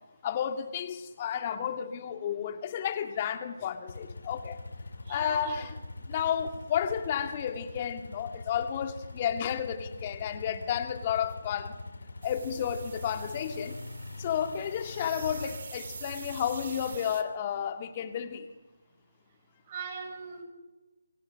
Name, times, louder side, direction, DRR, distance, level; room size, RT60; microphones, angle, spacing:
voice 1, 0.2-4.6 5.1-5.7 6.1-11.7 12.2-13.8 14.2-18.5, left 9 dB, 30° left, 7 dB, 2.3 m, -32 dB
sound 1, 3.9-17.0, left 2 dB, 70° left, 3.1 m, -43 dB
voice 2, 5.0-5.7 19.7-20.4, right 5 dB, 30° right, 5 dB, 7.0 m, -40 dB
sound 2, 12.2-17.2, right 5 dB, 50° right, 2.8 m, -46 dB
29.5 x 23.5 x 6.6 m, 1.1 s
figure-of-eight pair, 155°, 0 cm